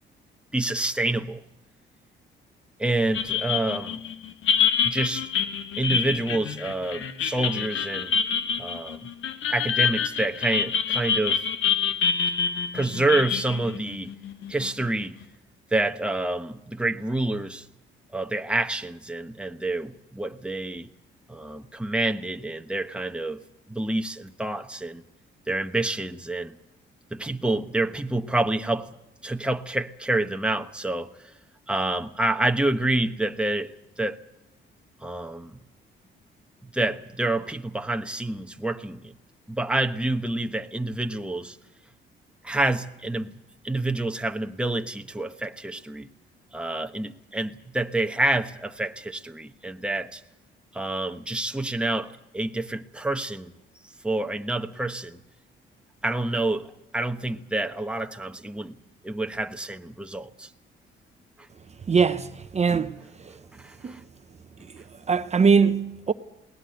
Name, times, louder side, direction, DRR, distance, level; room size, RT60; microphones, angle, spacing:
voice 1, 0.5-1.4 2.8-4.0 4.8-5.3 5.8-8.1 8.6-9.1 9.5-11.4 12.7-14.2 14.5-15.2 15.7-17.7 18.1-20.9 21.3-23.4 23.7-25.0 25.5-26.6 27.1-28.9 29.2-31.3 31.7-34.2 35.0-35.6 36.6-39.1 39.5-41.6 42.4-43.3 43.6-46.1 46.5-50.2 50.7-53.5 54.0-55.2 56.0-58.7 59.0-60.5 63.5-64.0, right 2 dB, 5° right, 1.2 m, -28 dB
sound 1, 3.1-14.9, left 7 dB, 80° left, 1.7 m, -26 dB
voice 2, 61.9-62.3 62.5-62.9 63.8-64.0 65.1-66.1, right 5 dB, 35° right, 0.9 m, -20 dB
21.5 x 18.5 x 7.9 m
cardioid pair, 90°, 20 cm